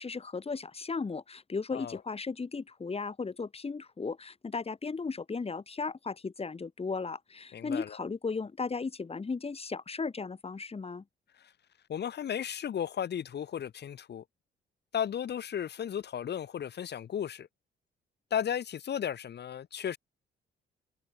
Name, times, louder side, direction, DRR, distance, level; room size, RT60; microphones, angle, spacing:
voice 1, 0.0-11.0, left 4 dB, 30° left, 5.1 m, -36 dB
voice 2, 7.5-8.0 11.9-14.2 14.9-17.5 18.3-20.0, left 9 dB, 55° left, 2.8 m, -34 dB
cardioid pair, 90°, 20 cm